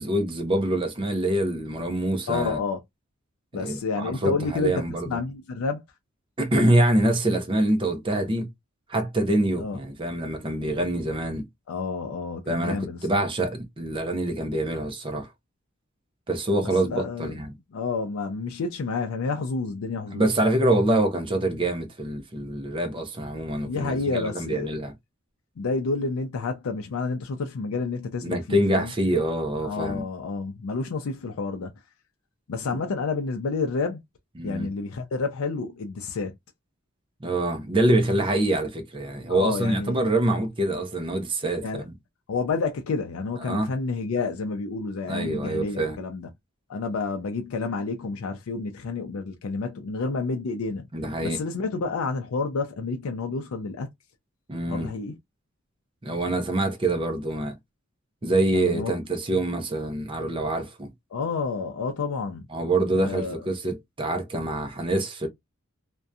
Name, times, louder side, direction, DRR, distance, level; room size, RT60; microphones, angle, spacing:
voice 1, 0.0-2.6 3.6-5.2 6.4-8.5 8.9-11.5 12.5-15.3 16.3-17.5 20.1-24.9 28.2-30.0 34.4-34.7 37.2-41.9 43.4-43.7 45.1-46.0 50.9-51.4 54.5-54.9 56.0-57.5 58.2-60.9 62.5-65.3, right 1 dB, 25° right, 0.5 m, -25 dB
voice 2, 2.3-2.8 3.5-5.8 9.6-9.8 11.7-13.1 16.6-17.4 17.7-20.3 23.6-24.7 25.6-28.9 29.6-31.7 32.5-34.0 34.4-36.3 39.3-40.0 41.6-41.8 42.3-46.3 46.7-50.9 51.2-53.9 54.7-55.1 58.5-58.9 61.1-62.5 62.9-63.5, left 4 dB, 80° left, 0.4 m, -29 dB
2.6 x 2.2 x 2.3 m
head